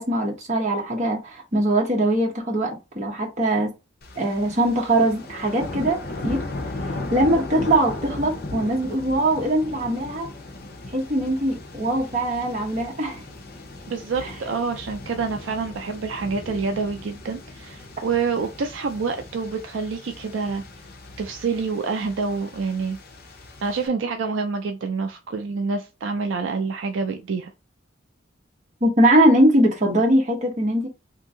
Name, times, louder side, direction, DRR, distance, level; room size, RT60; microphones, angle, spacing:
voice 1, 0.0-3.7 4.1-6.0 6.2-6.4 6.9-10.3 10.9-13.2 14.2-14.3 28.8-30.9, right 1 dB, 40° right, 1.1 m, -21 dB
sound 1, 4.0-23.9, left 2 dB, 55° left, 0.7 m, -37 dB
voice 2, 13.9-20.6 21.2-23.0 23.6-27.5, right 4 dB, 75° right, 0.4 m, -27 dB
2.8 x 2.6 x 3.7 m
head